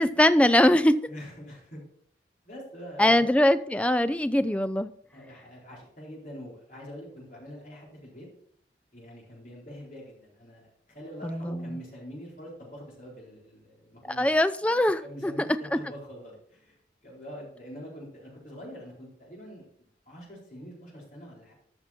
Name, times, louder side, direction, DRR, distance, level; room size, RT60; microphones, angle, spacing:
voice 1, 0.0-1.0 3.0-4.9 11.2-11.7 14.2-15.3 15.7-15.8, left 1 dB, 5° left, 12 dB, 0.4 m, -22 dB
voice 2, 1.1-1.9 2.4-3.3 5.1-8.3 8.9-10.7 10.9-14.3 15.0-16.8 17.0-19.7 20.1-21.5, equal, 45° left, -4 dB, 4.2 m, -44 dB
13.0 x 6.0 x 4.3 m, 0.62 s
head